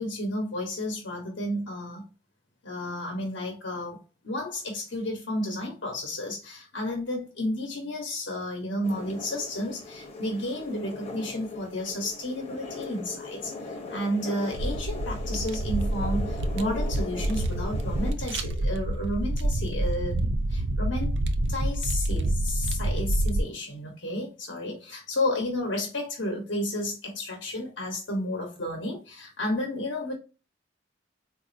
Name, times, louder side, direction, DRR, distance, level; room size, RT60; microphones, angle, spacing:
voice 1, 0.0-2.1 2.6-21.2 21.5-30.1, left 1 dB, 85° left, 1.0 m, -32 dB
sound 1, 8.8-18.1, left 3 dB, 35° left, 0.7 m, -40 dB
sound 2, 14.5-23.4, right 1 dB, 65° right, 0.5 m, -28 dB
3.9 x 2.5 x 2.5 m
head